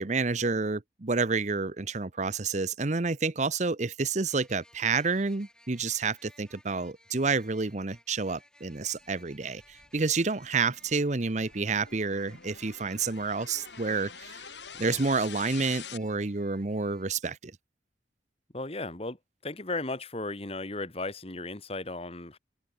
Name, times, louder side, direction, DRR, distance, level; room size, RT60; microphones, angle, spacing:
voice 1, 0.0-14.4 14.8-17.5, right 4 dB, 40° right, 0.8 m, -29 dB
sound 1, 4.3-17.1, left 1 dB, 5° left, 7.9 m, -60 dB
sound 2, 9.0-16.0, left 7 dB, 80° left, 6.6 m, -47 dB
voice 2, 18.5-22.4, left 2 dB, 35° left, 2.1 m, -36 dB
open air
head